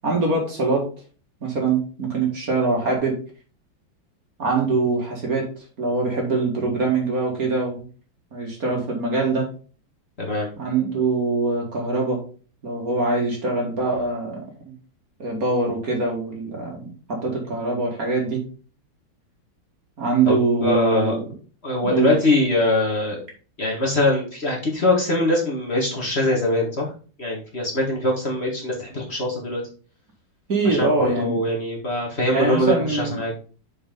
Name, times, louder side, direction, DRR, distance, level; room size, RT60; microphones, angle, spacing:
voice 1, 0.0-0.9 1.4-3.2 4.4-5.5 5.8-7.8 8.3-9.5 10.6-12.2 12.6-14.4 15.2-18.4 20.0-21.2 21.8-22.1 30.5-31.4 32.3-33.2, right 3 dB, 45° right, 0 dB, 2.3 m, -23 dB
voice 2, 10.2-10.5 20.3-21.2 21.6-23.2 23.6-26.9 27.2-29.6 30.7-33.3, left 1 dB, 35° left, -3 dB, 1.9 m, -22 dB
6.7 x 5.3 x 3.7 m, 0.38 s
omnidirectional pair, 2.2 m